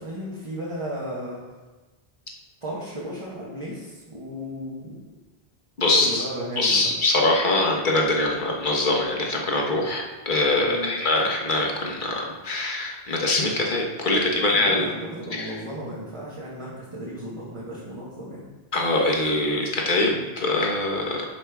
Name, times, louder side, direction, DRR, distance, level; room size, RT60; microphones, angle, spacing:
voice 1, 0.0-1.4 2.6-5.0 5.9-6.9 10.6-10.9 14.1-18.4, equal, 30° right, -6 dB, 1.4 m, -34 dB
voice 2, 5.8-6.3 6.6-14.8 15.3-15.5 18.7-21.2, left 2 dB, 55° left, -1 dB, 1.4 m, -23 dB
10.5 x 5.3 x 3.5 m, 1.2 s
omnidirectional pair, 1.0 m